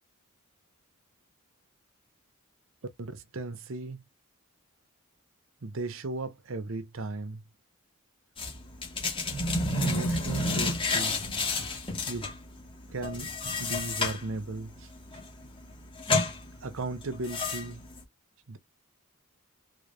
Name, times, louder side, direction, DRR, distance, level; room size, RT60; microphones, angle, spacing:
voice 1, 3.0-4.0 5.6-7.4 9.8-11.2 12.1-12.3 12.9-13.3 13.6-14.9 16.1-16.2 16.6-17.8 18.5-18.6, right 2 dB, 60° right, 0.7 m, -36 dB
sound 1, 8.4-18.0, left 2 dB, 25° left, 1.4 m, -31 dB
3.8 x 3.3 x 2.5 m
head